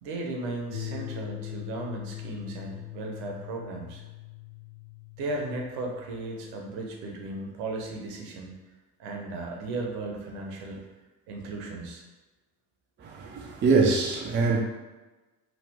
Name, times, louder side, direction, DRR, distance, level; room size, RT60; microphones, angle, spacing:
voice 1, 0.0-4.0 5.2-8.5 9.0-10.8 11.3-12.0, right 2 dB, 60° right, 0 dB, 0.9 m, -36 dB
sound 1, 0.7-7.8, left 13 dB, 45° left, 0.6 m, -42 dB
voice 2, 13.0-14.6, right 4 dB, 25° right, -1 dB, 0.5 m, -24 dB
3.0 x 2.4 x 3.5 m, 1.2 s
figure-of-eight pair, 60°, 48 cm